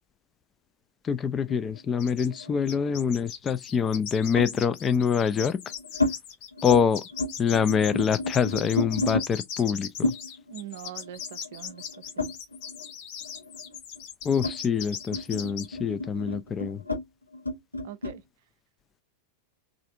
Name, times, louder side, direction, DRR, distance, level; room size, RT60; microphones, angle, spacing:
voice 1, 1.0-5.6 6.6-7.0 7.4-10.1 14.2-16.8, left 7 dB, 20° left, 0.4 m, -25 dB
sound 1, 1.5-3.1 4.4-4.6 5.3-6.1 6.5-6.8 7.1-9.3 10.0-12.9 13.2-18.2, left 2 dB, 85° left, 0.8 m, -32 dB
sound 2, 2.0-2.4 2.7-15.7, left 8 dB, 45° left, 0.9 m, -39 dB
voice 2, 10.5-11.9 12.2-12.3 17.8-18.2, right 12 dB, 55° right, 0.5 m, -42 dB
3.3 x 2.5 x 3.7 m
figure-of-eight pair, 90°, 0 cm